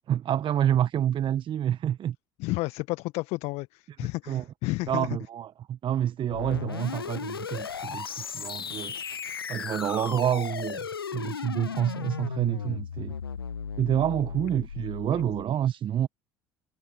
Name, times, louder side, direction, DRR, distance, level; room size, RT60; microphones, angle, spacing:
voice 1, 0.1-2.1 4.3-4.4 4.9-8.9 9.5-10.9 11.1-13.1 13.8-16.1, right 10 dB, 45° right, 1.4 m, -28 dB
voice 2, 2.4-5.1 15.1-15.2, left 22 dB, 60° left, 1.5 m, -31 dB
sound 1, 6.3-15.5, left 7 dB, 85° left, 0.9 m, -36 dB
figure-of-eight pair, 60°, 12 cm